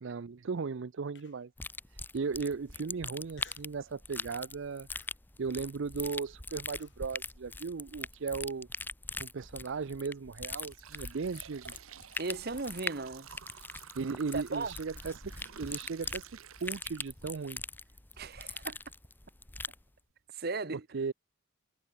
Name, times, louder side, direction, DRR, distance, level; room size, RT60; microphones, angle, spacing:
voice 1, 0.0-1.5 1.9-4.9 5.4-8.7 9.2-11.7 14.0-16.3 16.6-17.6 20.9-21.1, right 5 dB, 65° right, 0.5 m, -37 dB
Human voice, 1.2-1.6 2.1-2.2 3.3-3.8 4.2-4.5 4.9-7.0, left 6 dB, 55° left, 6.8 m, -59 dB
sound 1, 1.6-19.8, left 3 dB, 10° left, 0.8 m, -42 dB
sound 2, 9.8-9.9 10.3-17.4 17.9-18.0 18.8-18.9 19.5-19.6 20.0-20.2, right 8 dB, 90° right, 1.1 m, -52 dB
voice 2, 12.2-13.3 14.3-14.7 18.2-18.8 20.3-20.8, right 3 dB, 50° right, 1.0 m, -36 dB
head